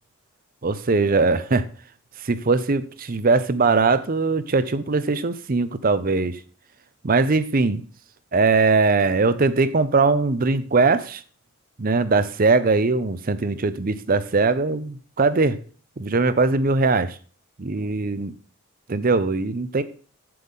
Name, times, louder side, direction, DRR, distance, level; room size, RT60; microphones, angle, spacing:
voice 1, 0.6-1.7 2.2-6.4 7.0-7.8 8.3-11.2 11.8-15.6 16.0-17.1 17.6-18.3 18.9-19.8, right 3 dB, 40° right, 14 dB, 0.6 m, -21 dB
8.4 x 7.7 x 3.7 m, 0.40 s
head